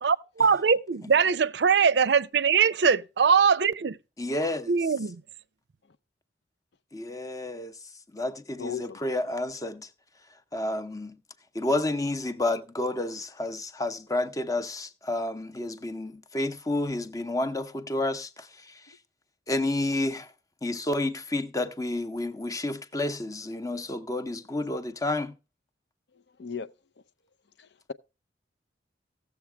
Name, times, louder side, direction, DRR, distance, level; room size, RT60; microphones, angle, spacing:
voice 1, 0.0-4.0 4.7-5.2, right 6 dB, 65° right, 0.5 m, -22 dB
voice 2, 4.2-4.7 6.9-7.7 8.1-9.9 10.5-11.2 11.5-18.5 19.5-20.3 20.6-25.3, left 2 dB, 20° left, 0.7 m, -30 dB
voice 3, 8.6-9.0 26.4-26.7 27.6-27.9, left 6 dB, 65° left, 0.6 m, -36 dB
16.0 x 7.2 x 3.3 m
head